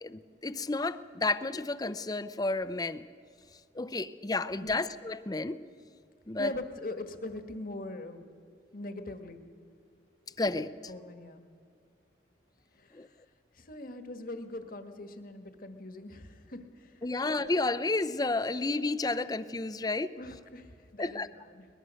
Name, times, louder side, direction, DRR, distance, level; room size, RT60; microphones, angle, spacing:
voice 1, 0.0-3.0 3.7-5.6 6.3-6.5 10.4-10.7 12.9-13.1 17.0-20.1 21.0-21.3, left 3 dB, 20° left, 14 dB, 0.6 m, -31 dB
voice 2, 6.4-8.2 8.7-9.4 10.2-10.3 10.9-11.4 12.7-13.2 13.5-17.3 20.2-21.7, left 2 dB, 50° left, 8 dB, 1.5 m, -42 dB
22.5 x 20.5 x 6.4 m, 2.3 s
head